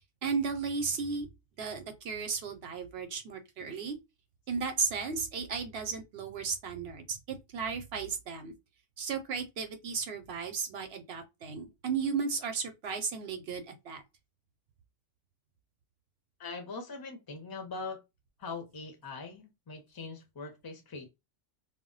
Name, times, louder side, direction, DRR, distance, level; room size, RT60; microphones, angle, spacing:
voice 1, 0.2-1.3 1.6-4.0 4.5-8.5 9.0-14.0, right 5 dB, 65° right, 0.8 m, -34 dB
voice 2, 16.4-18.0 18.4-21.1, left 4 dB, 25° left, 0.5 m, -42 dB
2.2 x 2.1 x 3.7 m
omnidirectional pair, 1.3 m